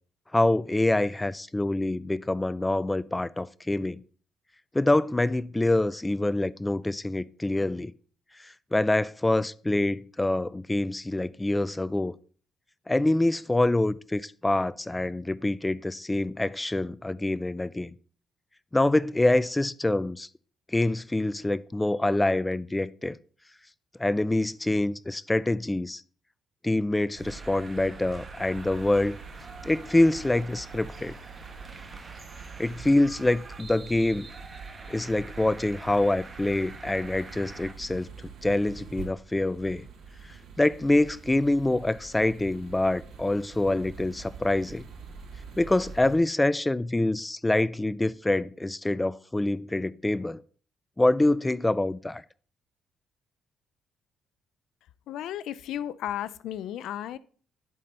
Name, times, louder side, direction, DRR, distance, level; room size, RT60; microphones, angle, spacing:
voice 1, 0.3-4.0 4.7-7.9 8.7-12.1 12.9-17.9 18.7-20.3 20.7-23.2 24.0-26.0 26.6-29.2 29.6-31.1 32.6-34.3 34.9-38.1 38.4-39.8 40.6-44.8 45.6-50.4 51.0-52.2, left 2 dB, 15° left, 0.4 m, -25 dB
sound 1, 27.1-46.2, right 5 dB, 75° right, 3.1 m, -45 dB
sound 2, 27.2-37.7, right 3 dB, 25° right, 1.3 m, -47 dB
voice 2, 55.1-57.2, left 11 dB, 85° left, 0.4 m, -34 dB
11.0 x 4.3 x 5.3 m
cardioid pair, 90°, 0 cm